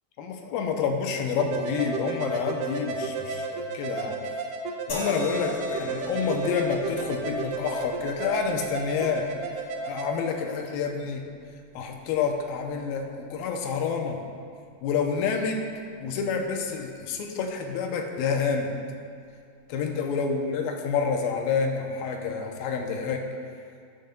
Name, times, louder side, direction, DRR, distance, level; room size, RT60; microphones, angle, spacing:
voice 1, 0.2-4.4 4.9-9.3 9.6-11.2 11.7-14.2 14.8-15.7 16.0-18.7 19.7-23.3, left 5 dB, 85° left, 2 dB, 2.5 m, -28 dB
sound 1, 1.4-10.1, right 4 dB, 75° right, 2.2 m, -33 dB
sound 2, 4.9-18.2 19.2-19.4, left 1 dB, 45° left, 3.0 m, -42 dB
15.0 x 6.5 x 2.3 m, 2.3 s
omnidirectional pair, 4.2 m